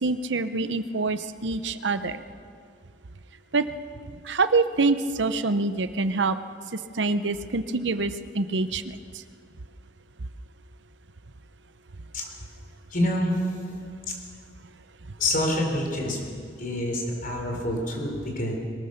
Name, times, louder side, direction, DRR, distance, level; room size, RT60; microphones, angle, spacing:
voice 1, 0.0-2.2 3.5-3.6 4.2-6.4 6.7-9.0, right 3 dB, 80° right, 11 dB, 0.8 m, -25 dB
voice 2, 12.9-13.4 15.2-16.2 16.6-18.6, left 1 dB, 50° left, 1 dB, 4.4 m, -26 dB
22.0 x 18.5 x 6.7 m, 2.2 s
head